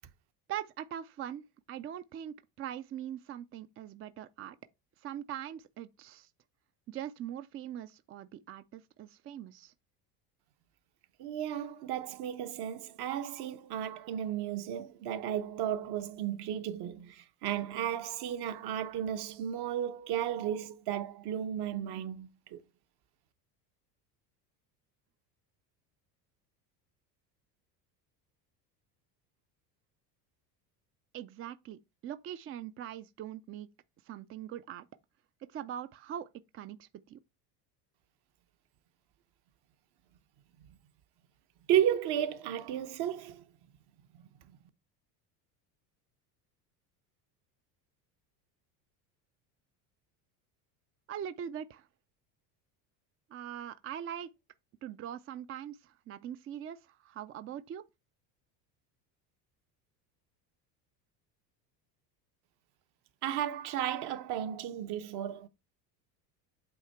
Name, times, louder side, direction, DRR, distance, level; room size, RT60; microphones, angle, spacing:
voice 1, 0.5-4.6 5.0-6.3 6.9-9.7 31.1-33.7 34.0-34.9 35.4-37.2 51.1-51.9 53.3-54.3 54.8-57.8, right 10 dB, 30° right, 0.4 m, -42 dB
voice 2, 11.2-22.6 41.7-43.4 44.5-44.6 63.2-65.5, right 10 dB, 55° right, 1.0 m, -34 dB
8.3 x 2.8 x 4.4 m
supercardioid pair, 90°, 47 cm